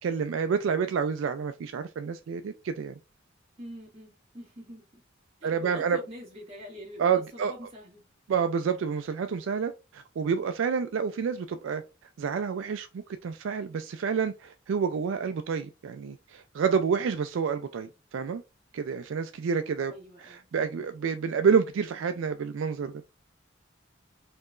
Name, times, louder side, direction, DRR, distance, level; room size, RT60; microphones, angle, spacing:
voice 1, 0.0-3.0 5.4-6.0 7.0-7.5 8.3-11.8 12.2-18.4 18.7-19.9 20.2-22.9, right 6 dB, 75° right, 0.4 m, -28 dB
voice 2, 3.6-5.0 5.4-8.0 19.9-20.5, equal, 35° right, 1.9 m, -45 dB
4.4 x 2.9 x 2.4 m
head